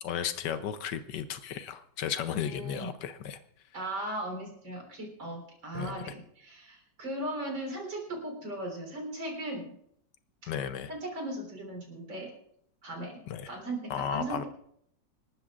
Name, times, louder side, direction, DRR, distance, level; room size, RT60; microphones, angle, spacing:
voice 1, 0.0-3.4 5.7-6.0 10.5-10.9 13.3-13.5 13.9-14.4, left 8 dB, 70° left, 11 dB, 1.3 m, -34 dB
voice 2, 2.3-2.9 3.7-9.8 10.4-10.5 10.9-12.3 12.8-14.5, right 1 dB, 85° right, 1 dB, 4.5 m, -38 dB
26.5 x 12.5 x 2.5 m, 0.71 s
omnidirectional pair, 2.0 m